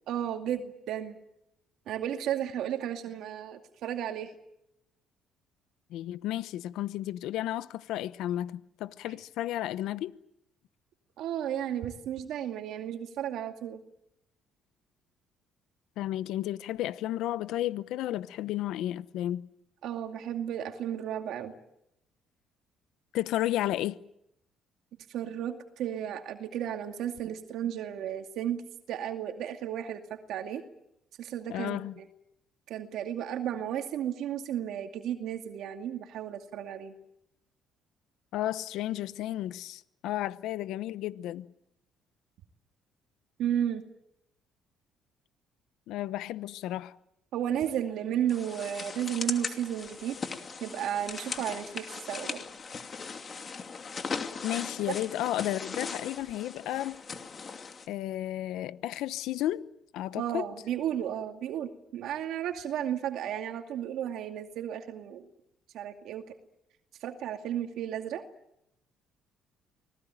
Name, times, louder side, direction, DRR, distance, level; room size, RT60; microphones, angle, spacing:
voice 1, 0.1-1.2 1.9-4.3 11.2-13.8 19.8-21.5 25.1-28.6 28.9-30.6 31.2-32.1 32.7-36.9 43.4-43.8 47.3-50.2 50.6-52.4 60.1-65.3 65.7-66.4 67.0-68.2, right 10 dB, 70° right, 2.3 m, -33 dB
voice 2, 5.9-10.1 16.0-19.4 23.1-24.0 31.5-32.0 38.3-41.5 45.9-46.9 54.4-57.0 57.9-59.7 59.9-60.4, left 13 dB, 80° left, 0.9 m, -33 dB
sound 1, 48.3-57.9, left 5 dB, 35° left, 2.7 m, -39 dB
25.5 x 19.5 x 9.1 m
cardioid pair, 110°, 0 cm